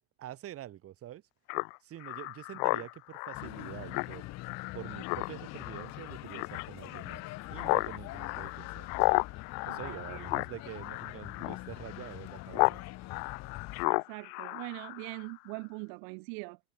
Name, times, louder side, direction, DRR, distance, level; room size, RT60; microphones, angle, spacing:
voice 1, 0.2-1.2 1.8-4.3 4.7-7.2 7.5-8.9 9.7-12.8, right 12 dB, 45° right, 3.7 m, -46 dB
Speech synthesizer, 1.5-12.8 13.1-15.3, left 40 dB or more, 80° left, 0.5 m, -34 dB
sound 1, 3.3-13.8, left 18 dB, 55° left, 1.3 m, -44 dB
voice 2, 9.7-10.3 13.9-16.6, right 40 dB or more, 80° right, 0.6 m, -42 dB
cardioid pair, 140°, 32 cm